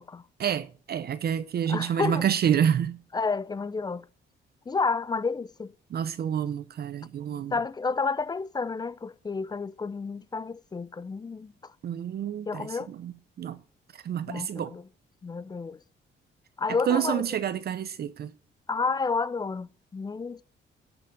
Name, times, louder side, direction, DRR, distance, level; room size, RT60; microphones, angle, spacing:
voice 1, 0.4-3.0 5.9-7.5 11.8-13.1 13.4-13.6 13.9-14.7 16.8-18.3, right 9 dB, 55° right, 0.6 m, -28 dB
voice 2, 1.7-2.3 3.1-4.0 4.7-5.7 7.5-11.5 12.5-12.9 14.3-14.8 15.2-15.8 16.6-17.2 18.7-20.4, left 4 dB, 20° left, 0.4 m, -30 dB
11.5 x 5.9 x 5.2 m
cardioid pair, 90°, 20 cm